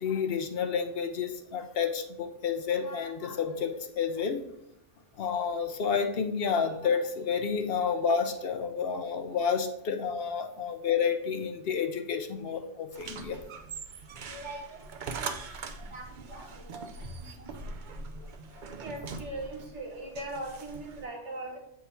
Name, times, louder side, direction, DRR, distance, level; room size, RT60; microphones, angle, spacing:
voice 1, 0.0-4.4 5.2-13.4, left 6 dB, 60° left, 6 dB, 0.7 m, -30 dB
sound 1, 12.9-21.0, right 4 dB, 55° right, 0.6 m, -42 dB
voice 2, 14.3-14.8 15.9-16.9 17.2-17.5 18.8-21.6, right 2 dB, 75° right, 1 dB, 1.7 m, -40 dB
8.1 x 3.7 x 4.1 m, 0.81 s
omnidirectional pair, 1.2 m